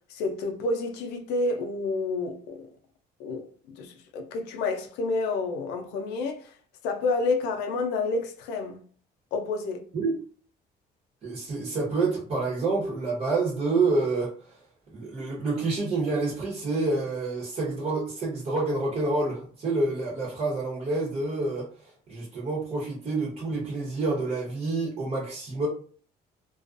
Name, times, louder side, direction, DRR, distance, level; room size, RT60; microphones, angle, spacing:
voice 1, 0.1-2.7 3.2-6.5 6.8-8.8 9.3-9.8, left 3 dB, 90° left, 0.5 m, -29 dB
voice 2, 11.2-14.3 14.9-21.7 22.1-25.7, right 3 dB, 40° right, 1.0 m, -28 dB
2.4 x 2.2 x 2.4 m
cardioid pair, 110°, 17 cm